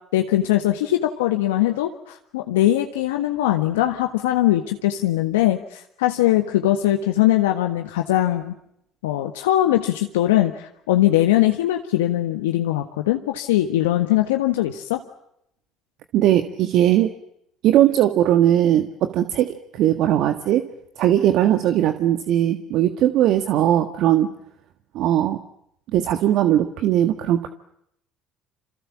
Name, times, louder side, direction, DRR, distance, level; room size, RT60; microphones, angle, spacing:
voice 1, 0.1-8.5 9.0-15.0, left 14 dB, 85° left, 4 dB, 1.5 m, -21 dB
voice 2, 16.1-17.1 17.6-20.6 21.0-24.3 24.9-25.4 25.9-27.5, right 12 dB, 65° right, 8 dB, 1.6 m, -19 dB
27.5 x 27.5 x 7.4 m, 0.77 s
hypercardioid pair, 65°, 0 cm